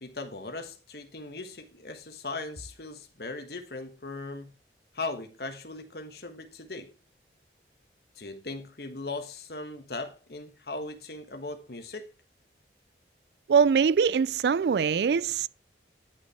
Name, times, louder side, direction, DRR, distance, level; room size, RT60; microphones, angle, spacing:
voice 1, 0.0-4.5 4.9-6.9 8.2-12.1, left 3 dB, 55° left, 1.4 m, -38 dB
voice 2, 13.5-15.5, right 6 dB, 65° right, 0.3 m, -23 dB
11.0 x 5.6 x 4.6 m
head